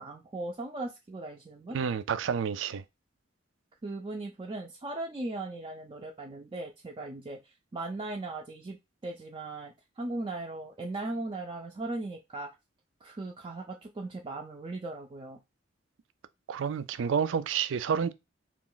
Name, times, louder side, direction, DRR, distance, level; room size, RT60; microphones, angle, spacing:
voice 1, 0.0-1.8 3.8-8.8 9.0-12.5 13.0-15.4, right 2 dB, 25° right, 0.4 m, -38 dB
voice 2, 1.7-2.8 16.5-18.1, right 7 dB, 90° right, 0.4 m, -29 dB
3.0 x 2.5 x 3.8 m
head